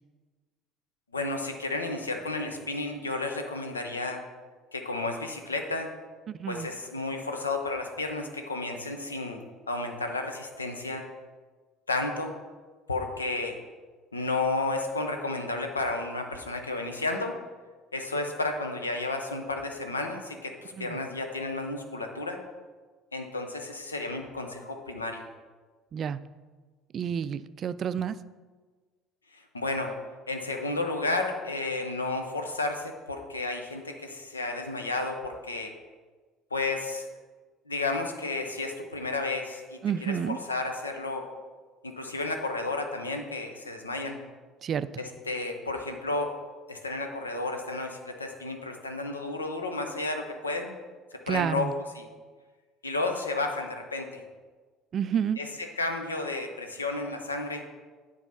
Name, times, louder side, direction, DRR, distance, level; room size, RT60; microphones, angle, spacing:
voice 1, 1.1-4.2 4.7-5.9 6.5-11.0 11.9-12.3 12.9-13.6 14.1-17.3 17.9-22.4 23.1-25.2 29.3-29.9 30.3-35.7 36.5-37.1 37.7-41.3 41.8-44.2 45.0-46.3 46.7-50.7 51.3-52.1 52.8-54.2 55.4-57.7, left 2 dB, 85° left, 5 dB, 0.7 m, -32 dB
voice 2, 6.3-6.7 20.8-21.0 25.9-26.2 26.9-28.1 39.8-40.4 44.6-44.9 51.3-51.7 54.9-55.4, right 8 dB, 40° right, 15 dB, 0.3 m, -29 dB
9.0 x 3.9 x 5.5 m, 1.4 s
figure-of-eight pair, 60°, 0 cm